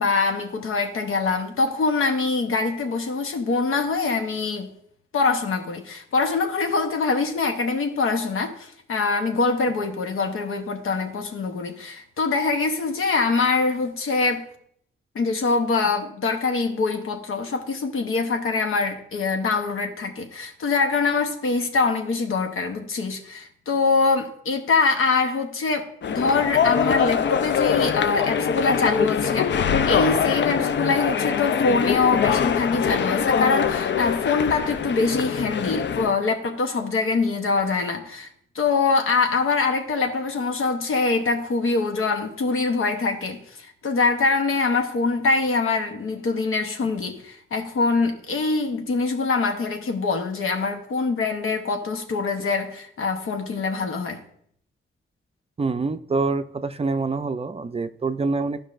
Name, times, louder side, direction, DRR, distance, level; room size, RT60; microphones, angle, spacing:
voice 1, 0.0-4.7 5.1-14.4 15.1-29.5 29.9-38.3 38.5-54.2, left 4 dB, 80° left, 0.9 m, -24 dB
sound 1, 26.0-36.2, left 7 dB, 60° left, 0.4 m, -23 dB
voice 2, 55.6-58.6, right 3 dB, 30° right, 0.4 m, -26 dB
12.5 x 5.4 x 2.5 m
cardioid pair, 65°, 21 cm